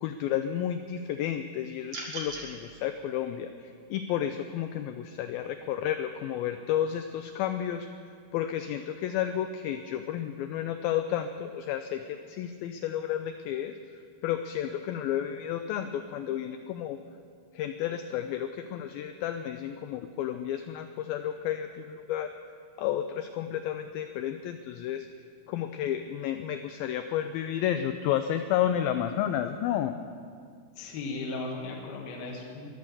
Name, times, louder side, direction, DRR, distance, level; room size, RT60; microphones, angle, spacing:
voice 1, 0.0-7.9 8.3-13.7 14.2-17.0 17.5-22.3 22.8-25.1 25.5-30.0, left 10 dB, 90° left, 8 dB, 2.1 m, -31 dB
sound 1, 1.9-2.5, right 2 dB, 45° right, 2.6 m, -37 dB
voice 2, 30.8-32.7, left 3 dB, 70° left, -1 dB, 3.1 m, -36 dB
22.5 x 7.7 x 7.1 m, 2.2 s
omnidirectional pair, 4.8 m